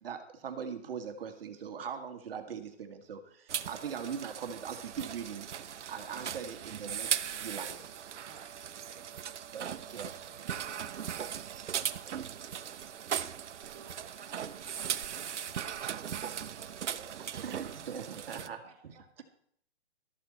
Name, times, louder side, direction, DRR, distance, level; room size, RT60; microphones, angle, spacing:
voice 1, 0.0-5.5 5.9-7.7 9.5-10.2 10.4-10.6 17.4-17.6 17.9-18.9, right 7 dB, 55° right, 6 dB, 2.0 m, -41 dB
sound 1, 3.5-18.5, right 9 dB, 90° right, 0.8 m, -38 dB
voice 2, 7.5-7.8 8.3-8.5 8.9-9.1 9.8-11.9 16.8-17.7 18.7-18.8, right 5 dB, 10° right, 0 dB, 0.6 m, -57 dB
voice 3, 13.6-17.0 17.9-19.2, right 7 dB, 35° right, 1 dB, 2.5 m, -57 dB
13.0 x 11.5 x 4.3 m, 0.64 s
hypercardioid pair, 165°, 34 cm